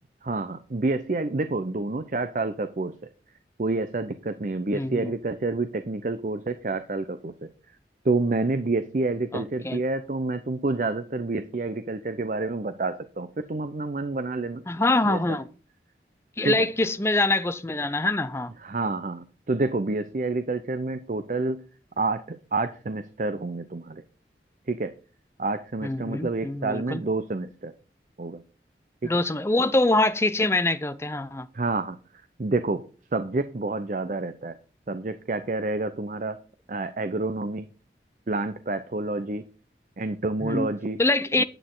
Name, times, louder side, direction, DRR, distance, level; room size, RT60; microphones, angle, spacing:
voice 1, 0.2-2.9 3.6-7.5 8.0-14.6 15.1-15.4 16.4-16.6 18.6-21.6 22.0-24.0 24.7-24.9 25.4-27.7 28.2-28.4 29.0-29.1 31.5-32.0 32.4-32.8 33.1-34.5 34.9-36.4 36.7-37.7 38.3-39.5 40.0-41.0 41.4-41.5, right 3 dB, 45° right, 0.6 m, -28 dB
voice 2, 4.7-5.1 9.3-9.8 14.7-15.5 16.4-18.5 25.8-27.0 29.0-31.5 40.4-40.7 41.0-41.4, left 2 dB, 15° left, 0.5 m, -24 dB
9.1 x 8.6 x 3.8 m
head